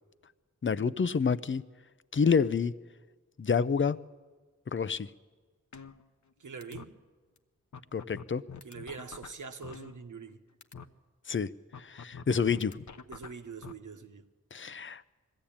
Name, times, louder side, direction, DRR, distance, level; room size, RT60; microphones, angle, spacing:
voice 1, 0.6-1.6 2.1-2.7 3.4-4.0 4.7-5.1 7.9-8.4 11.3-11.5 11.8-12.8 14.5-15.0, left 5 dB, 40° left, 0.7 m, -28 dB
sound 1, 5.7-6.3 6.6-6.9 7.4-7.5 7.7-10.3 10.6-10.9 11.7-13.7, left 6 dB, 65° left, 1.0 m, -46 dB
voice 2, 6.4-7.0 8.6-10.4 13.1-14.3, right 5 dB, 80° right, 1.2 m, -44 dB
20.5 x 15.0 x 8.7 m
cardioid pair, 45°, 31 cm